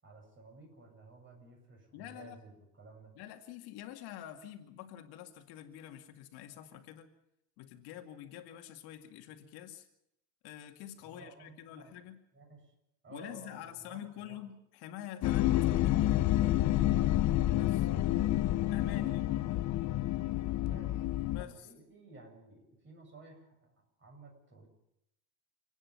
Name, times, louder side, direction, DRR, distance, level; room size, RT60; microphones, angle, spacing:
voice 1, 0.0-3.1 11.0-12.0 12.3-12.7 13.0-14.4 15.2-16.1 16.9-18.0 18.6-19.7 20.4-21.0 21.4-24.7, right 2 dB, 30° right, 2 dB, 7.5 m, -54 dB
voice 2, 1.9-2.4 3.2-7.1 7.6-9.9 10.4-12.2 13.1-16.2 17.6-17.9 18.7-19.3 21.3-21.7, left 11 dB, 65° left, 5 dB, 2.3 m, -47 dB
sound 1, 15.2-21.4, left 14 dB, 45° left, 0.7 m, -29 dB
29.0 x 9.9 x 9.6 m, 0.81 s
cardioid pair, 135°, 41 cm